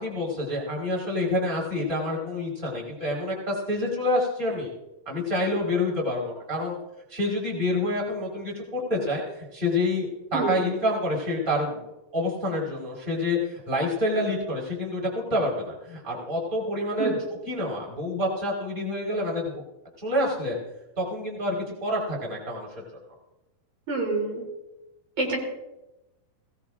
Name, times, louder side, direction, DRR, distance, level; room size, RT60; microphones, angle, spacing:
voice 1, 0.0-4.7 5.1-6.7 7.1-11.8 12.1-17.1 17.5-19.6 20.0-20.6 21.0-22.7, left 1 dB, 15° right, -3 dB, 4.5 m, -27 dB
voice 2, 23.9-24.5 25.2-25.4, right 3 dB, 55° right, -2 dB, 4.9 m, -27 dB
22.0 x 18.0 x 2.6 m, 0.96 s
omnidirectional pair, 4.2 m